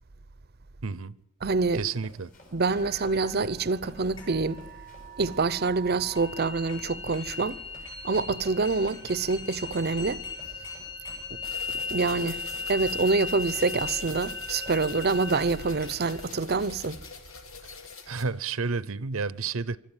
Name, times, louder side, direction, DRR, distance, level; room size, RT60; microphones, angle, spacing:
voice 1, 0.8-1.1 1.7-2.3 18.1-19.8, right 4 dB, 80° right, 0.8 m, -30 dB
voice 2, 1.4-1.8 2.5-4.6 5.2-7.6 8.0-10.2 11.9-12.4 12.7-17.0, right 3 dB, 50° right, 0.7 m, -26 dB
Run, 1.6-14.9, left 1 dB, 40° left, 7.4 m, -54 dB
sound 1, 2.6-18.5, left 3 dB, 25° left, 6.7 m, -38 dB
sound 2, 11.4-18.2, left 5 dB, 80° left, 2.6 m, -45 dB
24.5 x 13.0 x 9.1 m
head